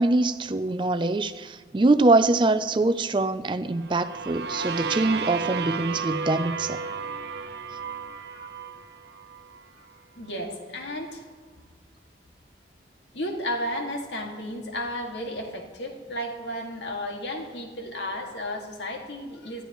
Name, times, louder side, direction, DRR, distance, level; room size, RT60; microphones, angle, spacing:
voice 1, 0.0-6.8, right 2 dB, 25° right, 0.4 m, -23 dB
sound 1, 3.8-9.6, right 5 dB, 70° right, 0.7 m, -33 dB
voice 2, 10.1-11.2 13.1-19.6, left 1 dB, 80° left, 2.1 m, -33 dB
20.0 x 13.0 x 3.1 m
head